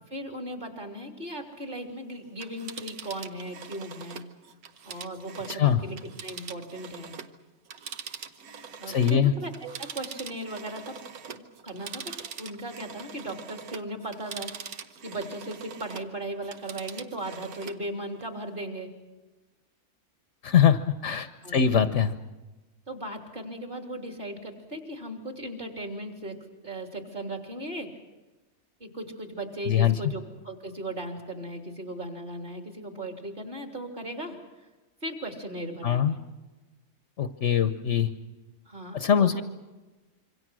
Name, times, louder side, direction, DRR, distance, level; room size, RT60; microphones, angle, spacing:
voice 1, 0.1-4.2 4.8-7.1 8.8-11.0 11.2-12.0 12.4-18.9 21.4-21.8 22.9-27.9 28.8-34.4 35.0-36.2 38.6-39.4, right 1 dB, 35° right, 3 dB, 3.5 m, -37 dB
Telephone, 2.3-7.4 7.7-16.1 16.4-17.8 18.2-18.3, right 7 dB, 80° right, 1.5 m, -43 dB
voice 2, 8.9-9.3 20.4-21.3 21.5-22.1 29.7-30.0 35.8-36.1 37.2-38.1 38.9-39.4, left 8 dB, 55° left, 10 dB, 1.2 m, -22 dB
26.5 x 24.5 x 6.2 m, 1.2 s
omnidirectional pair, 1.5 m